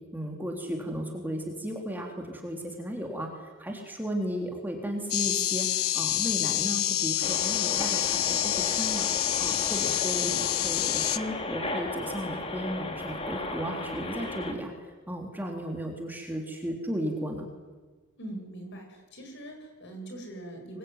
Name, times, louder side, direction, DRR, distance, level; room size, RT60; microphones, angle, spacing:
voice 1, 0.1-9.1 9.4-14.7 15.1-17.5, equal, 10° right, 1 dB, 3.4 m, -35 dB
sound 1, 5.1-11.2, left 13 dB, 75° left, 0.9 m, -27 dB
sound 2, 7.2-14.5, left 2 dB, 25° left, 3.3 m, -35 dB
voice 2, 18.2-20.8, right 1 dB, 55° left, 4 dB, 7.9 m, -42 dB
25.0 x 23.0 x 9.6 m, 1.3 s
head